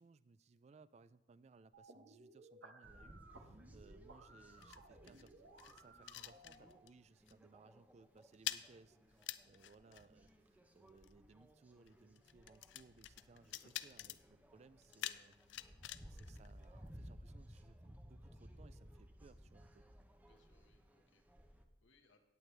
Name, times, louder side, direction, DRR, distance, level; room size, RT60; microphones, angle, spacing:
voice 1, 0.0-5.3 5.6-15.4 16.0-19.9, right 4 dB, 35° right, 16 dB, 0.3 m, -64 dB
sound 1, 1.7-6.7, right 2 dB, 75° right, 1.2 m, -60 dB
sound 2, 2.8-21.6, equal, 10° right, 0.7 m, -60 dB
sound 3, 3.7-7.0 7.3-7.5 7.8-17.2, left 13 dB, 70° left, 0.4 m, -50 dB
voice 2, 20.2-22.2, left 3 dB, 90° left, 4 dB, 1.3 m, -74 dB
18.0 x 8.0 x 3.3 m, 0.91 s
head